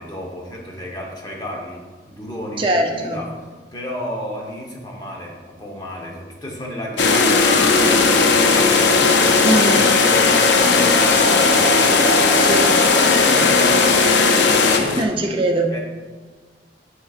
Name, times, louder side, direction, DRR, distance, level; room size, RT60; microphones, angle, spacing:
voice 1, 0.0-3.3 3.7-8.7 9.2-11.6 13.2-14.2 14.8-14.9 15.7-15.8, left 1 dB, 25° left, -1 dB, 0.9 m, -32 dB
voice 2, 2.6-3.2 9.4-9.8 12.4-12.8 13.9-14.0 14.9-15.8, right 1 dB, 30° right, 2 dB, 0.6 m, -21 dB
sound 1, 7.0-15.0, left 4 dB, 85° left, 0.6 m, -15 dB
7.9 x 6.1 x 2.4 m, 1.4 s
head